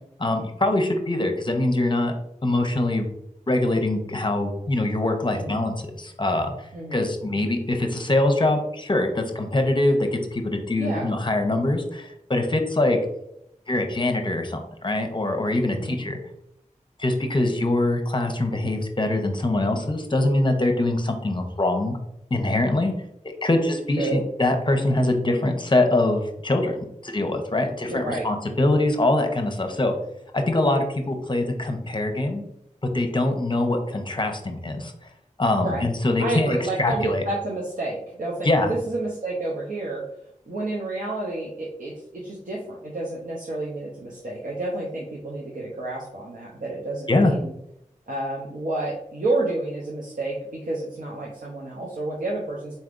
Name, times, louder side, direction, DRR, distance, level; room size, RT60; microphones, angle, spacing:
voice 1, 0.2-2.1 2.4-3.0 3.5-6.5 6.9-13.0 13.7-16.2 17.0-22.0 22.3-22.9 23.4-29.9 30.3-32.4 32.9-34.9 35.4-37.2 38.4-38.7 47.1-47.3, left 2 dB, 35° left, 5 dB, 0.7 m, -23 dB
voice 2, 5.3-5.7 6.7-7.1 10.8-11.1 15.7-16.0 24.0-24.2 27.9-28.3 35.6-35.8 36.2-40.0 40.5-47.5 48.1-52.7, right 2 dB, 85° right, -4 dB, 0.7 m, -30 dB
4.2 x 3.4 x 2.5 m, 0.78 s
wide cardioid pair, 50°, 13 cm